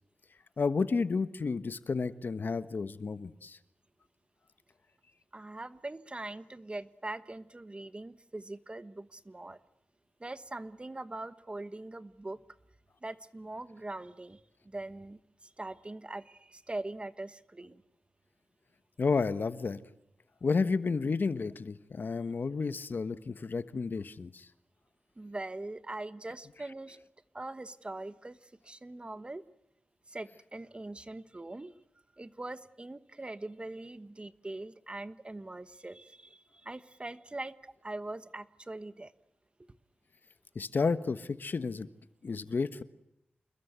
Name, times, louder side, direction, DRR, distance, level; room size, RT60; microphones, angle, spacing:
voice 1, 0.6-3.6 19.0-19.8 20.4-24.5 40.5-41.9 42.2-42.8, left 4 dB, 60° left, 12 dB, 1.3 m, -31 dB
voice 2, 5.3-9.6 10.2-12.4 13.0-14.4 14.6-17.8 25.2-27.0 27.3-29.4 30.1-31.7 32.2-39.1, right 2 dB, 30° right, 13 dB, 1.2 m, -42 dB
28.5 x 21.0 x 8.2 m, 0.83 s
cardioid pair, 50°, 4 cm